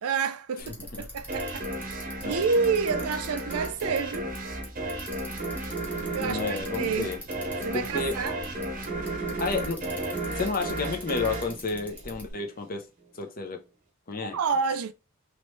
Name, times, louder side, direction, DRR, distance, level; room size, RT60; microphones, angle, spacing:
voice 1, 0.0-4.3 6.1-7.1 7.6-8.4 14.3-14.9, right 5 dB, 85° right, 0.5 m, -29 dB
voice 2, 0.6-1.1 2.2-2.4 2.9-3.0 6.2-7.2 7.7-8.2 9.4-9.9 10.3-12.9 13.1-13.6 14.1-14.4, left 4 dB, 40° left, 0.7 m, -31 dB
Bicycle, 0.6-12.3, equal, 10° left, 1.1 m, -44 dB
sound 1, 1.3-12.5, right 2 dB, 35° right, 0.8 m, -33 dB
3.1 x 3.0 x 3.2 m
head